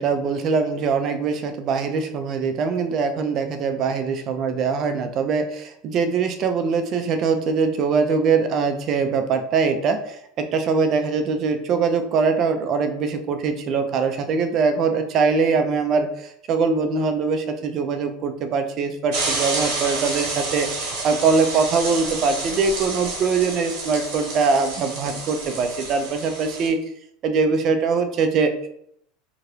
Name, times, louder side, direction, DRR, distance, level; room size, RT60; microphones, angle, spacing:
voice 1, 0.0-26.8 27.2-28.5, right 5 dB, 45° right, 7 dB, 0.4 m, -22 dB
sound 1, 19.1-26.7, right 3 dB, 65° right, 1.2 m, -29 dB
2.8 x 2.4 x 3.2 m, 0.73 s
supercardioid pair, 115°, 0 cm